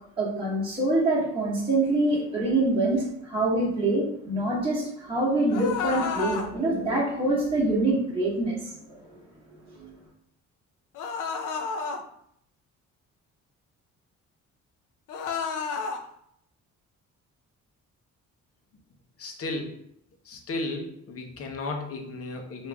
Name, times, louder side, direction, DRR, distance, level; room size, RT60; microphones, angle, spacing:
voice 1, 0.2-8.6 9.8-9.9, right 2 dB, 20° right, -7 dB, 1.3 m, -25 dB
sound 1, 5.5-6.5 10.9-12.0 15.1-16.0, left 5 dB, 85° left, 0.6 m, -31 dB
voice 2, 19.2-19.7 20.3-22.7, left 2 dB, 50° left, 3 dB, 0.9 m, -34 dB
3.4 x 2.7 x 3.4 m, 0.72 s
cardioid pair, 90°, 30 cm